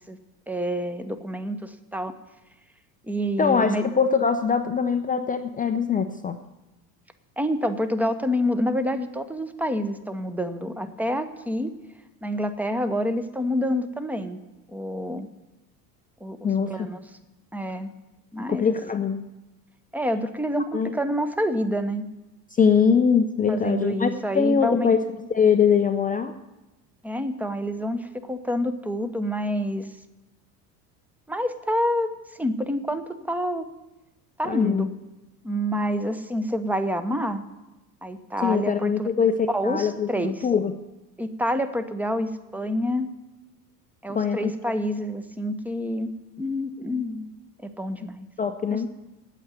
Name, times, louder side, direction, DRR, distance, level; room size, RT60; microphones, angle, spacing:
voice 1, 0.5-2.1 3.1-3.8 7.4-11.7 12.2-14.4 14.7-15.3 16.2-17.0 17.5-17.9 18.3-18.7 19.9-22.1 23.5-25.0 27.0-29.9 31.3-32.1 32.4-33.7 34.4-34.9 35.4-37.4 38.0-39.1 39.5-40.4 41.2-43.1 44.0-46.1 46.4-47.3 47.8-48.3 48.7-48.9, equal, 5° right, 10 dB, 0.9 m, -27 dB
voice 2, 3.4-6.4 16.4-16.9 18.5-19.3 20.7-21.0 22.5-25.0 25.3-26.3 34.4-34.9 38.4-40.8 44.1-44.5 48.4-48.9, left 6 dB, 15° left, 7 dB, 0.5 m, -22 dB
8.7 x 8.3 x 9.3 m, 1.0 s
hypercardioid pair, 75°, 49 cm